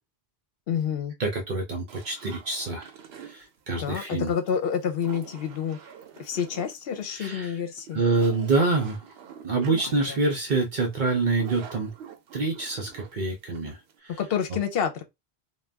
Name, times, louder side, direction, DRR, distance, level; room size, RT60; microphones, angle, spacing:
voice 1, 0.7-1.1 3.7-5.8 6.2-8.0 9.8-10.2 14.2-15.0, left 7 dB, 70° left, 0.9 m, -28 dB
voice 2, 1.2-2.9 3.2-4.3 7.1-7.5 7.9-9.1 9.4-11.9 12.3-14.2, right 3 dB, 55° right, 0.7 m, -26 dB
sound 1, 1.9-14.0, right 8 dB, 85° right, 0.9 m, -47 dB
2.5 x 2.2 x 3.2 m
omnidirectional pair, 1.0 m